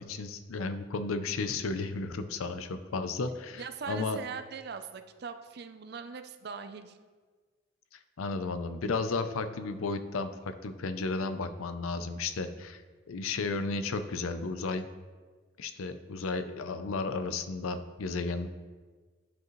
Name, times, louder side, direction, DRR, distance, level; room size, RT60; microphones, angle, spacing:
voice 1, 0.0-3.6 3.9-4.2 8.2-12.8 13.1-14.9 15.6-18.5, left 3 dB, 90° left, 9 dB, 0.5 m, -33 dB
voice 2, 3.5-7.0, right 5 dB, 50° right, 9 dB, 0.5 m, -41 dB
11.5 x 5.2 x 3.1 m, 1.4 s
head